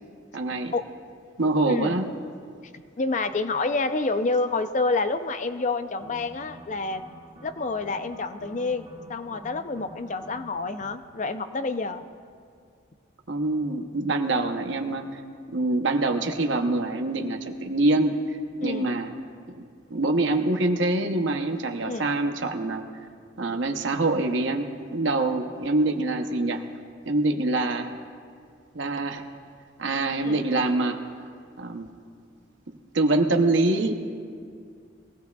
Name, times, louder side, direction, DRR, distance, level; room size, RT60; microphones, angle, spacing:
voice 1, 0.3-0.7 1.4-2.1 13.3-15.2 15.5-19.1 19.6-22.8 23.4-26.6 27.1-27.9 28.7-29.3 29.8-31.0 31.6-31.9 32.9-34.1, right 2 dB, 65° right, 5 dB, 0.8 m, -25 dB
voice 2, 1.7-2.0 3.0-7.0 7.4-12.0 18.6-18.9 21.8-22.1 30.2-30.4, left 3 dB, 35° left, 10 dB, 0.5 m, -28 dB
sound 1, 5.9-10.9, right 1 dB, 30° right, 1.6 m, -48 dB
21.5 x 16.5 x 2.3 m, 2.2 s
head